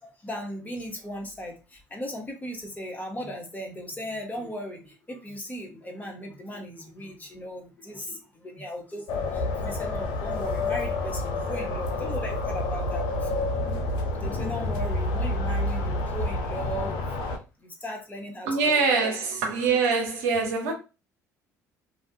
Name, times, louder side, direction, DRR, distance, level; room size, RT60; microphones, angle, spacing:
voice 1, 0.0-13.5 14.2-17.0 17.6-19.2, equal, 20° left, 0.9 m, -37 dB
sound 1, 9.1-17.4, left 2 dB, 65° left, 0.5 m, -29 dB
voice 2, 18.5-20.7, right 4 dB, 75° right, 0.7 m, -24 dB
2.3 x 2.2 x 2.7 m
hypercardioid pair, 60°, 9 cm